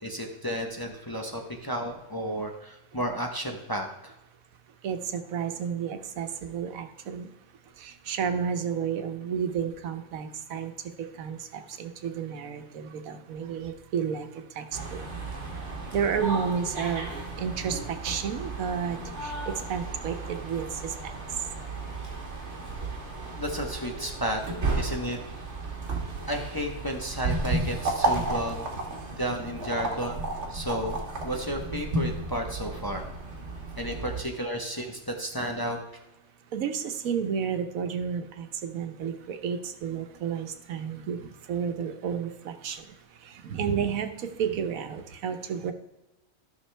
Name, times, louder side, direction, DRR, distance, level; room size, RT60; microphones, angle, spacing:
voice 1, 0.0-4.1 23.3-24.4 24.7-25.2 26.3-28.6 29.2-30.2 30.5-31.0 31.2-33.1 33.8-35.8, equal, 20° left, 2 dB, 0.7 m, -32 dB
voice 2, 4.8-7.3 7.8-10.7 11.2-14.3 14.6-14.7 15.9-17.1 17.4-19.0 19.2-19.3 19.7-21.1 36.5-42.8 43.4-44.1 44.4-45.7, right 7 dB, 85° right, 8 dB, 1.3 m, -31 dB
sound 1, 14.7-34.2, right 2 dB, 55° right, 1.8 m, -33 dB
13.0 x 6.1 x 3.3 m, 0.98 s
omnidirectional pair, 1.4 m